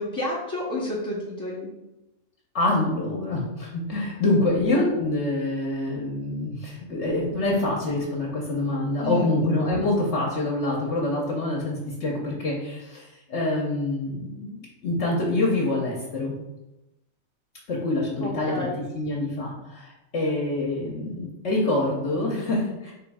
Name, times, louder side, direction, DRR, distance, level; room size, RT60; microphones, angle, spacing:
voice 1, 0.0-1.7 9.0-9.4 18.2-18.8, left 1 dB, 20° left, -7 dB, 0.5 m, -30 dB
voice 2, 2.5-11.8 12.0-16.3 17.7-18.7 18.9-22.9, left 2 dB, 60° left, -3 dB, 1.1 m, -26 dB
3.4 x 3.0 x 4.7 m, 0.95 s
omnidirectional pair, 1.4 m